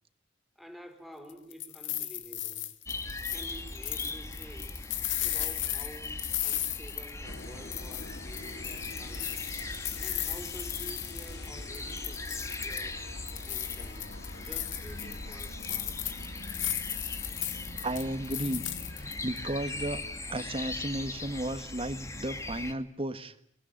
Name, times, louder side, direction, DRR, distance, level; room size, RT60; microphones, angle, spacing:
voice 1, 0.6-2.7 3.3-4.8 5.2-9.5 9.7-13.1 13.5-16.0, equal, ahead, 4.2 m, -50 dB
sound 1, 1.3-7.4 7.7-11.5 11.7-12.9 13.3-19.4, left 12 dB, 85° left, 2.2 m, -36 dB
sound 2, 2.9-22.7, left 2 dB, 15° left, 2.0 m, -40 dB
sound 3, 7.2-19.1, left 3 dB, 60° left, 1.3 m, -47 dB
voice 2, 17.8-18.6 19.0-20.0 20.3-23.3, right 1 dB, 30° right, 1.7 m, -34 dB
28.5 x 20.5 x 9.1 m
head